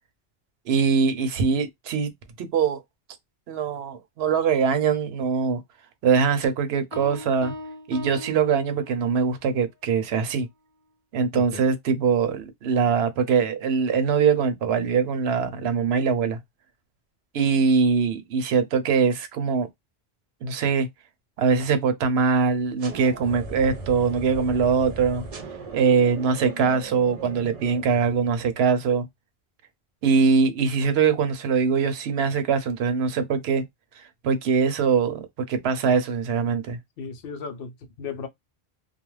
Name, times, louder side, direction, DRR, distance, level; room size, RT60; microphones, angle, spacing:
voice 1, 0.7-2.1 2.4-2.8 3.5-5.6 6.0-7.5 7.9-10.5 11.1-16.4 17.3-19.7 20.4-20.9 21.4-25.2 25.7-29.1 30.0-33.6 34.0-36.8, right 5 dB, 80° right, 0.9 m, -22 dB
sound 1, 6.9-9.3, left 2 dB, 25° left, 0.7 m, -39 dB
voice 2, 11.3-11.6 37.0-38.3, left 5 dB, 65° left, 0.7 m, -35 dB
sound 2, 22.8-28.8, right 3 dB, 45° right, 0.6 m, -38 dB
2.4 x 2.1 x 3.1 m
omnidirectional pair, 1.1 m